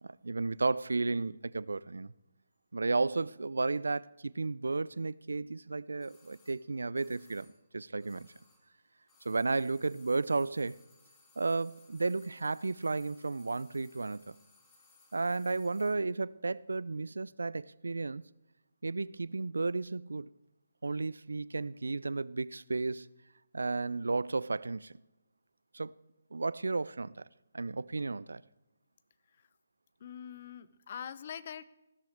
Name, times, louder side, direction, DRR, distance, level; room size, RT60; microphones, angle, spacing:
voice 1, 0.0-2.1 2.7-8.3 9.2-10.8 11.4-14.4 15.1-18.2 18.8-20.3 20.8-23.1 23.5-24.9 25.7-25.9 26.3-27.3 27.5-28.4, right 3 dB, 75° right, 0.4 m, -33 dB
sound 1, 6.0-8.8 9.0-16.0 16.3-16.4, left 3 dB, 15° left, 2.5 m, -64 dB
voice 2, 30.0-31.6, left 8 dB, 45° left, 0.6 m, -43 dB
15.0 x 13.0 x 3.6 m
figure-of-eight pair, 145°, 0 cm